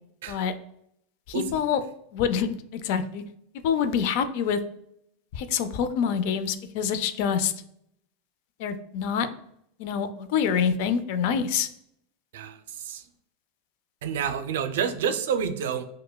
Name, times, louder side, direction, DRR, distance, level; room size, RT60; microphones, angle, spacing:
voice 1, 1.3-1.8 2.1-3.2 3.6-4.6 5.3-7.5 8.6-9.3 9.8-11.7, left 7 dB, 65° left, 10 dB, 0.4 m, -26 dB
voice 2, 12.3-13.0 14.0-15.8, right 7 dB, 80° right, 9 dB, 0.4 m, -29 dB
5.2 x 2.1 x 2.2 m, 0.73 s
hypercardioid pair, 110°, 0 cm